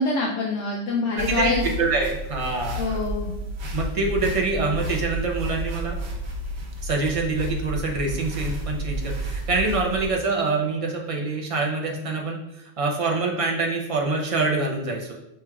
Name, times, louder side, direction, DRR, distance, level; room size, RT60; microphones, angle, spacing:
voice 1, 0.0-1.7 2.8-3.3, left 3 dB, 75° left, -2 dB, 0.9 m, -25 dB
voice 2, 1.2-2.8 3.7-6.0 6.8-15.1, right 3 dB, 40° right, 0 dB, 0.5 m, -25 dB
sound 1, 1.2-10.1, right 1 dB, 60° right, 1.0 m, -31 dB
6.0 x 3.2 x 2.3 m, 0.89 s
omnidirectional pair, 1.2 m